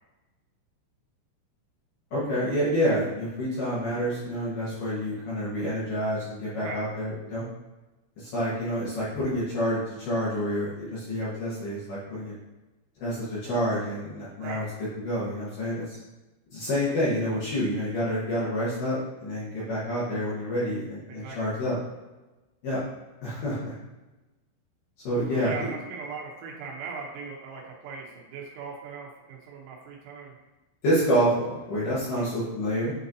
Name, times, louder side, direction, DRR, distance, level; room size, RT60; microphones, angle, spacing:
voice 1, 2.1-7.5 8.2-12.3 13.0-14.6 15.0-16.0 16.5-21.7 22.6-22.8 23.2-23.7 25.0-25.5 30.8-32.9, equal, 65° left, -9 dB, 2.1 m, -28 dB
voice 2, 21.1-21.6 25.3-30.4 32.1-32.3, right 5 dB, 85° right, -1 dB, 3.6 m, -39 dB
9.1 x 3.9 x 2.8 m, 1.1 s
omnidirectional pair, 5.8 m